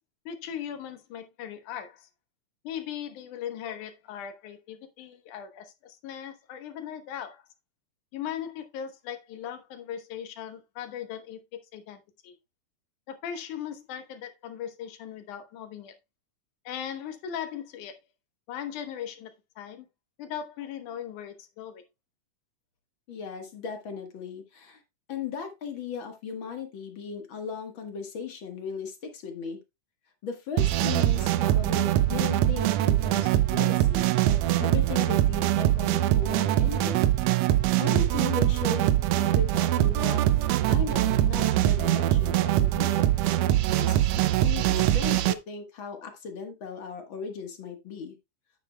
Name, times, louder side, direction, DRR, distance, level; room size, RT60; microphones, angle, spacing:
voice 1, 0.3-2.1 2.6-7.4 8.1-12.4 13.1-15.9 16.7-18.0 18.5-19.9 20.2-21.8, left 9 dB, 85° left, 2.6 m, -38 dB
voice 2, 23.1-24.8 25.1-29.6 30.2-37.1 37.8-38.9 39.2-40.2 40.7-43.1 43.8-48.2, left 5 dB, 50° left, 1.8 m, -37 dB
sound 1, 30.6-45.3, right 14 dB, 80° right, 1.6 m, -23 dB
9.5 x 9.0 x 2.2 m
omnidirectional pair, 3.5 m